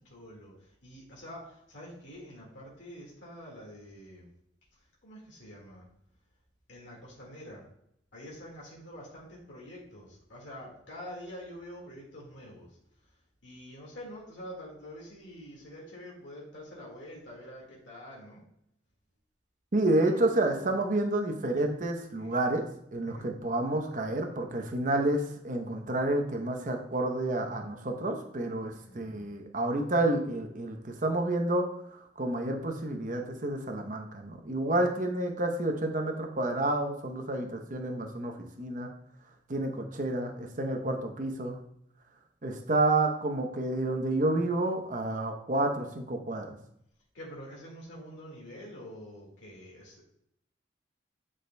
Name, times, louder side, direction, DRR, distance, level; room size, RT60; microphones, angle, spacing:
voice 1, 0.1-0.5 0.8-4.3 5.0-5.8 6.7-7.6 8.1-12.7 13.4-18.4 20.0-20.1 22.1-22.3 23.0-23.3 28.6-29.3 47.1-50.0, equal, 80° left, -4 dB, 1.8 m, -46 dB
voice 2, 19.7-22.6 22.9-31.7 32.2-38.9 39.5-41.6 42.4-46.5, right 2 dB, 45° right, 4 dB, 0.8 m, -29 dB
9.1 x 4.8 x 2.2 m, 0.75 s
head